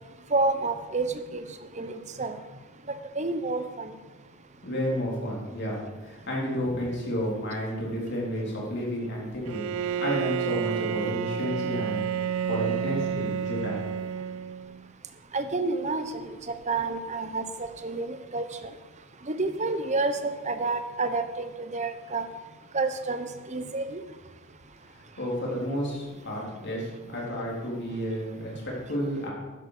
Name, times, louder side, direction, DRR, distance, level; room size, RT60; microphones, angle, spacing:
voice 1, 0.3-1.4 1.8-2.4 3.2-3.9 15.3-18.4 19.3-22.2 22.7-24.0, right 3 dB, 30° right, 9 dB, 0.9 m, -29 dB
voice 2, 4.6-12.2 12.5-13.9 24.9-29.3, equal, 55° left, -3 dB, 3.9 m, -31 dB
Bowed string instrument, 9.5-14.9, right 8 dB, 65° right, 0.3 m, -30 dB
13.0 x 10.5 x 5.0 m, 1.2 s
head